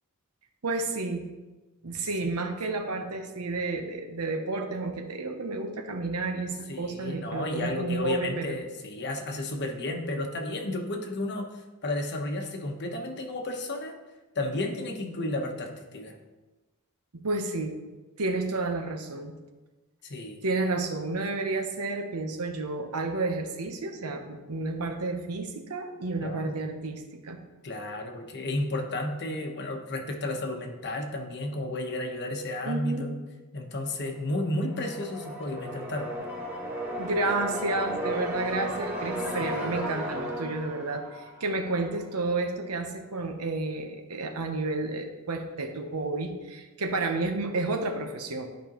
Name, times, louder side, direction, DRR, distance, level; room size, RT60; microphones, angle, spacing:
voice 1, 0.6-1.2 1.8-8.6 17.1-17.8 18.2-19.3 20.4-27.4 32.6-33.1 37.0-48.5, right 3 dB, 75° right, 5 dB, 0.9 m, -31 dB
voice 2, 6.7-13.9 14.3-16.2 20.0-20.4 26.2-26.5 27.6-33.2 33.5-36.1 39.4-39.9, left 1 dB, 50° left, 3 dB, 1.0 m, -32 dB
sound 1, 34.3-42.0, equal, 5° right, 1.5 m, -35 dB
12.0 x 5.2 x 3.0 m, 1.2 s
head